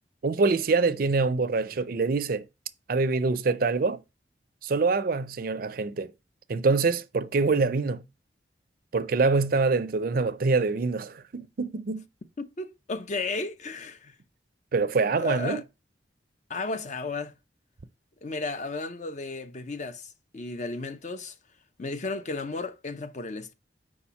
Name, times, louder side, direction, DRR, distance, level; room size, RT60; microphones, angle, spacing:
voice 1, 0.2-2.4 2.9-4.0 4.6-6.1 6.5-8.0 8.9-12.0 14.7-15.6, right 4 dB, 55° right, 0.5 m, -25 dB
voice 2, 12.4-14.1 15.2-15.6 16.5-17.3 18.2-21.3 21.8-23.5, left 3 dB, 40° left, 0.6 m, -34 dB
4.9 x 4.3 x 5.6 m
head